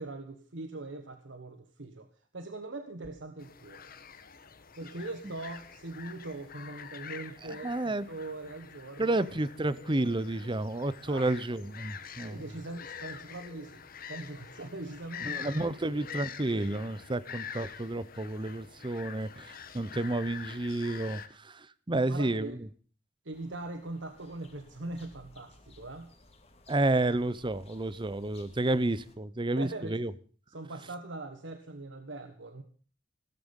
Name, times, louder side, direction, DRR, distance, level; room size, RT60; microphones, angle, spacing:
voice 1, 0.0-2.1 2.3-3.8 4.8-9.2 11.1-11.3 12.2-16.1 21.9-22.6 23.2-26.1 29.6-30.0 30.5-32.6, right 2 dB, 70° right, 7 dB, 1.4 m, -41 dB
sound 1, 3.4-21.3, left 7 dB, 50° left, 1.4 m, -46 dB
voice 2, 7.6-8.1 9.0-12.4 15.2-22.5 26.7-30.1, right 2 dB, 25° right, 16 dB, 0.8 m, -31 dB
sound 2, 23.3-29.2, left 2 dB, 35° left, 2.3 m, -58 dB
17.0 x 13.5 x 5.5 m, 0.40 s
head